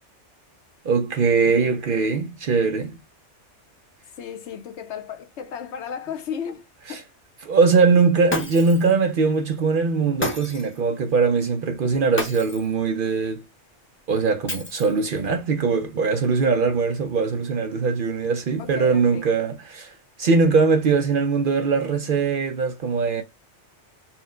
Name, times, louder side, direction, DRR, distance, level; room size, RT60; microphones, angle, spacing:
voice 1, 0.8-3.0 6.9-7.0 7.4-13.4 14.1-23.2, right 4 dB, 60° right, 0.6 m, -21 dB
voice 2, 4.1-7.0 18.6-19.3, left 7 dB, 75° left, 1.0 m, -34 dB
Shatter, 8.3-8.9 10.2-10.8 12.2-12.7 14.5-15.1, left 1 dB, 15° left, 0.6 m, -30 dB
4.2 x 2.1 x 3.7 m
omnidirectional pair, 1.2 m